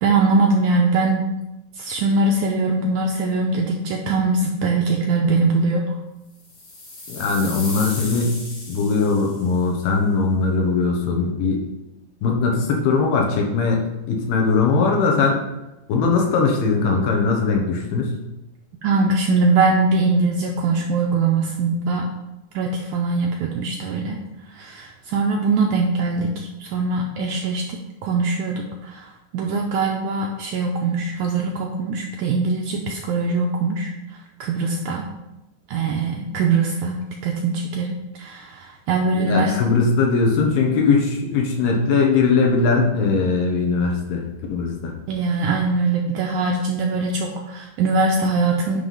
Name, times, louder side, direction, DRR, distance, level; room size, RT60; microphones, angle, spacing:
voice 1, 0.0-1.3 1.8-5.9 18.8-22.1 22.6-24.2 24.5-29.1 29.3-33.9 34.4-35.1 35.7-39.6 45.1-48.8, right 3 dB, 80° right, 1 dB, 1.7 m, -22 dB
sound 1, 6.4-9.6, left 2 dB, 45° left, 1.8 m, -35 dB
voice 2, 7.1-8.4 8.7-11.7 12.2-13.8 14.1-15.4 15.9-18.1 39.1-44.2 44.5-45.0, left 4 dB, 80° left, 1 dB, 2.9 m, -20 dB
9.8 x 3.4 x 5.5 m, 0.97 s
omnidirectional pair, 4.1 m